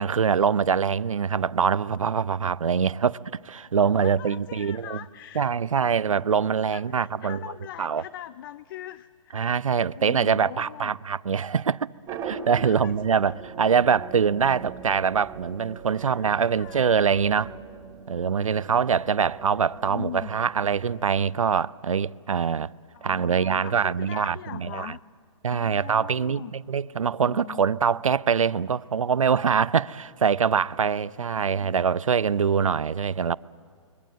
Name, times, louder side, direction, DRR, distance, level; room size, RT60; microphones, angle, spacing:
voice 1, 0.0-3.2 3.4-5.0 5.4-7.4 7.8-8.0 9.3-11.9 12.2-17.5 18.1-22.7 23.0-24.9 25.4-33.4, right 6 dB, 80° right, 0.6 m, -24 dB
voice 2, 3.8-5.5 6.7-9.5 9.9-10.9 12.6-13.4 16.0-16.9 19.8-20.4 22.9-25.0 25.5-26.5 27.2-27.6 31.3-31.8, left 13 dB, 40° left, 0.6 m, -41 dB
sound 1, 12.1-21.1, right 6 dB, 20° right, 3.1 m, -41 dB
29.5 x 23.0 x 7.7 m
hypercardioid pair, 130°, 17 cm